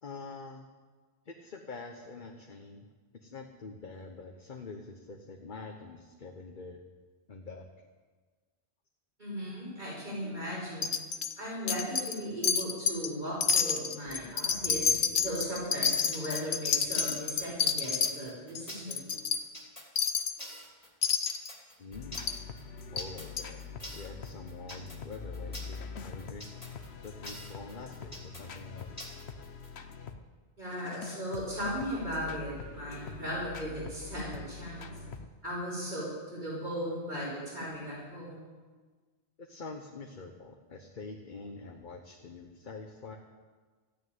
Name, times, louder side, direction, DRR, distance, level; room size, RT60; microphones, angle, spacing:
voice 1, 0.0-0.7 1.2-2.9 3.2-6.8 7.3-7.7 21.8-22.4 22.9-23.6 23.9-26.4 27.0-29.0 39.4-43.2, left 3 dB, 45° left, 2 dB, 1.2 m, -45 dB
voice 2, 9.2-10.9 11.4-19.4 30.6-34.9 35.4-38.5, equal, 45° right, -5 dB, 6.0 m, -37 dB
Wind chime, 10.8-11.3 11.7-12.2 12.4-13.1 13.4-18.1 18.5-18.6 18.9-19.4 20.0-20.4 21.0-21.5 22.2-22.4 23.0-23.1 23.4-23.5, left 6 dB, 85° left, 1.2 m, -29 dB
sound 1, 16.1-29.7, equal, 25° left, 2.8 m, -46 dB
sound 2, 21.9-30.2 30.7-35.3, left 5 dB, 65° left, 1.2 m, -44 dB
14.0 x 9.7 x 9.3 m, 1.4 s
omnidirectional pair, 1.2 m